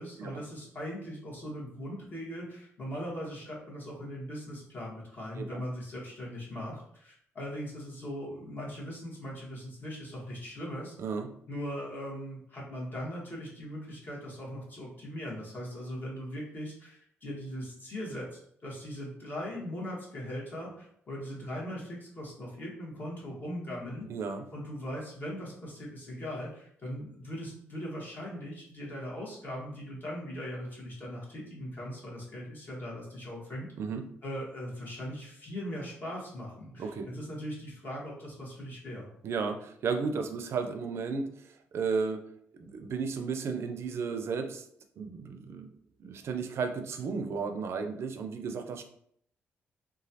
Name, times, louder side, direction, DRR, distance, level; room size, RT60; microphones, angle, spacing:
voice 1, 0.0-10.9 11.5-33.7 34.2-39.1, equal, 40° left, -4 dB, 1.3 m, -40 dB
voice 2, 24.1-24.4 33.8-34.0 36.8-37.1 39.2-41.3 41.7-42.2 42.6-44.6 45.0-45.7 46.0-48.8, right 5 dB, 60° right, 6 dB, 0.4 m, -33 dB
3.0 x 2.3 x 2.7 m, 0.67 s
cardioid pair, 80°, 5 cm